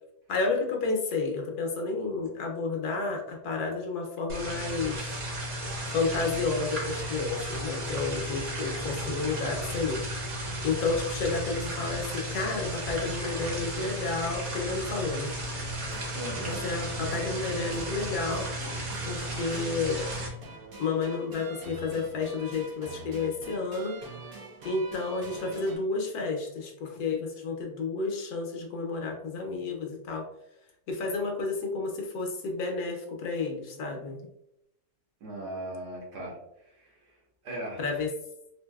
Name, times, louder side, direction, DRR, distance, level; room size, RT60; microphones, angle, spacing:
voice 1, 0.3-5.2 5.9-10.0 10.6-15.3 16.5-18.5 19.0-20.1 20.8-23.9 24.6-30.2 30.9-34.2 37.8-38.1, left 4 dB, 70° left, 1 dB, 1.2 m, -31 dB
sound 1, 4.3-20.3, right 1 dB, 50° right, 1.1 m, -34 dB
sound 2, 15.9-25.8, right 2 dB, 85° right, 1.7 m, -45 dB
voice 2, 16.1-16.7 35.2-37.9, right 1 dB, 65° right, -3 dB, 1.6 m, -39 dB
4.5 x 2.6 x 2.3 m, 0.82 s
omnidirectional pair, 1.8 m